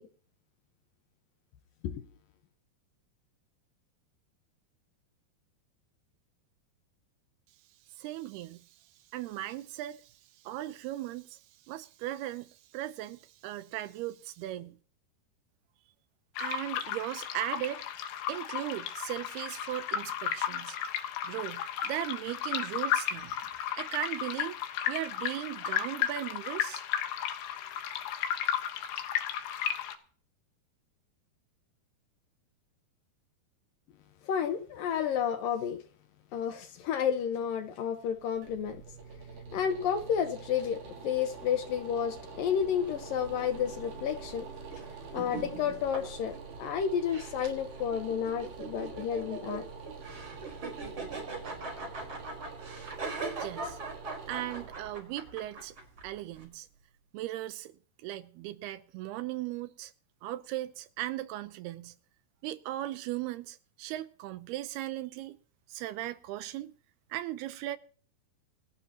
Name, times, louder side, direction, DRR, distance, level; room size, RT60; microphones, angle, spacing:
voice 1, 8.0-8.6 9.1-10.1 10.4-11.4 11.7-14.8 16.4-17.9 18.3-20.8 21.2-23.4 23.8-24.6 24.9-26.8 53.4-53.8 54.3-55.8 56.0-56.7 57.1-57.7 58.0-59.9 60.2-61.9 62.4-65.4 65.7-66.8 67.1-67.8, right 14 dB, 80° right, 2.7 m, -37 dB
sound 1, 16.4-30.0, left 10 dB, 85° left, 3.6 m, -34 dB
voice 2, 34.2-35.8 36.3-38.8 39.5-44.5 45.1-49.6 50.4-50.5, left 8 dB, 70° left, 2.5 m, -31 dB
sound 2, 38.1-57.0, right 5 dB, 65° right, 4.9 m, -46 dB
sound 3, 42.8-56.4, right 3 dB, 30° right, 4.9 m, -42 dB
27.5 x 11.5 x 2.9 m
omnidirectional pair, 4.8 m